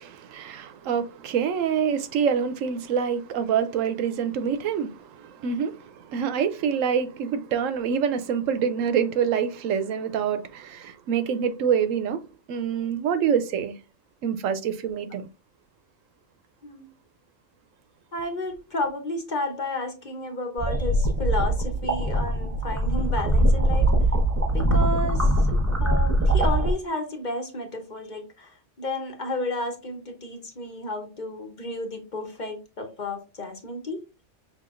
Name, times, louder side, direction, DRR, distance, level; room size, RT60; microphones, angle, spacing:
voice 1, 0.0-4.9 5.4-5.8 6.1-12.2 12.5-13.7 14.2-15.2, right 7 dB, 90° right, 1.0 m, -26 dB
voice 2, 18.1-23.9 24.5-25.3 25.8-28.5 28.8-34.0, left 2 dB, 40° left, 1.0 m, -32 dB
sound 1, 20.6-26.7, right 1 dB, 15° right, 0.8 m, -22 dB
5.7 x 3.6 x 2.5 m
omnidirectional pair, 1.3 m